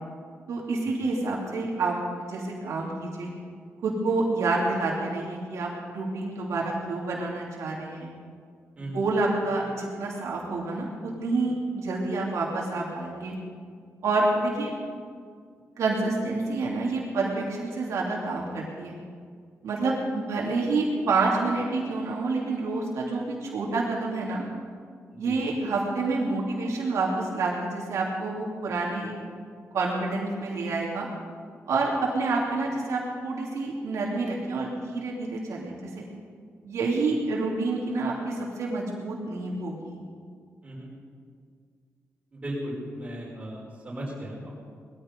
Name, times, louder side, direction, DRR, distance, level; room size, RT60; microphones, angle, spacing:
voice 1, 0.5-3.3 3.8-8.1 8.9-10.9 11.2-13.4 14.0-14.7 15.8-18.9 19.6-24.5 25.2-29.1 29.7-31.1 31.7-36.0 36.6-40.0, right 3 dB, 80° right, -3 dB, 2.8 m, -28 dB
voice 2, 25.1-25.4 40.6-40.9 42.3-44.5, equal, 25° right, -5 dB, 5.0 m, -36 dB
20.5 x 13.5 x 5.3 m, 2.1 s
wide cardioid pair, 170°, 5 cm